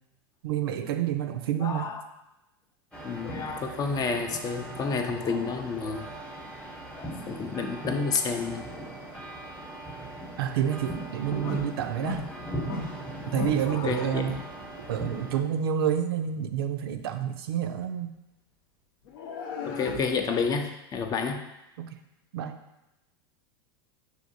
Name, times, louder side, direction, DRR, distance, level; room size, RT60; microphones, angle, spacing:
voice 1, 0.4-1.9 10.4-12.3 13.3-14.4 14.9-18.2 21.8-21.9 22.3-22.6, right 9 dB, 75° right, 7 dB, 0.4 m, -29 dB
voice 2, 1.6-2.0 3.0-6.1 6.9-8.7 13.2-14.4 19.7-21.4, left 5 dB, 30° left, 6 dB, 0.5 m, -30 dB
sound 1, 2.9-15.4, right 1 dB, 5° left, 0.8 m, -39 dB
sound 2, 11.4-11.7 12.0-12.3 12.6-13.0 13.3-13.7 14.2-14.5 19.0-20.1, left 3 dB, 70° left, 0.7 m, -34 dB
6.3 x 2.6 x 2.7 m, 0.95 s
hypercardioid pair, 100°, 13 cm